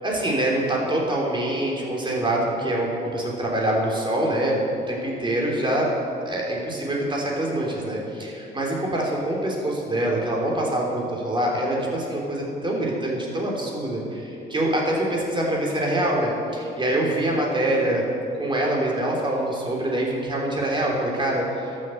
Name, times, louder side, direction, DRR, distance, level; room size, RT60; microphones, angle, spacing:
voice 1, 0.0-4.6 4.9-5.9 6.2-18.0 18.4-21.8, right 1 dB, 25° right, -2 dB, 3.4 m, -25 dB
12.5 x 7.6 x 7.8 m, 2.7 s
cardioid pair, 90°, 20 cm